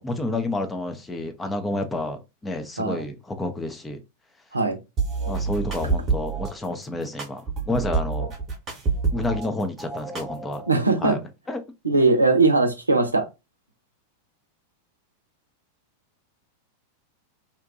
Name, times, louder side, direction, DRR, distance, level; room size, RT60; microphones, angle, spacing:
voice 1, 0.0-4.0 5.2-8.3 9.1-10.6 11.0-11.2 11.5-11.6, left 2 dB, 10° left, 0.5 m, -29 dB
sound 1, 5.0-6.5 7.2-9.5 9.8-10.8, right 4 dB, 30° right, 0.9 m, -27 dB
voice 2, 10.7-11.2 11.8-13.2, right 3 dB, 80° right, 0.6 m, -20 dB
2.7 x 2.2 x 2.5 m
figure-of-eight pair, 90°, 0 cm